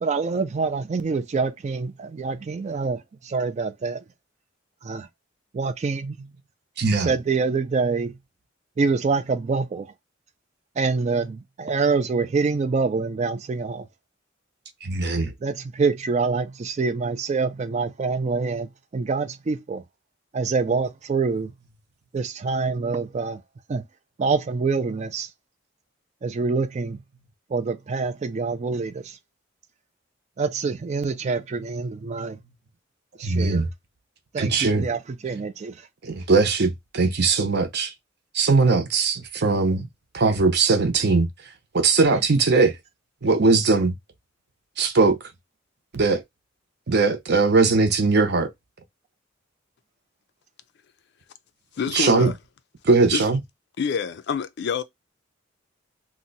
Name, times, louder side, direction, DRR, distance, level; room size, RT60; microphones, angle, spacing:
voice 1, 0.0-4.0 4.8-5.1 5.5-6.3 7.0-8.2 8.8-9.9 10.8-13.9 15.4-19.8 20.3-21.5 22.1-23.4 23.7-23.8 24.2-25.3 26.2-27.0 27.5-29.2 30.4-32.4 33.2-33.6 34.3-35.8 42.1-42.2, right 4 dB, 35° right, 0.3 m, -26 dB
voice 2, 6.8-7.1 14.8-15.3 33.2-33.7 34.4-34.8 36.0-37.9 38.3-39.9 40.1-41.3 41.7-42.7 43.2-43.9 44.8-45.2 45.9-46.2 46.9-48.5 51.9-52.3 52.8-53.4, right 3 dB, 55° right, 0.7 m, -20 dB
voice 3, 51.8-52.4 53.1-53.2 53.8-54.8, left 6 dB, 60° left, 0.4 m, -27 dB
2.8 x 2.1 x 3.9 m
head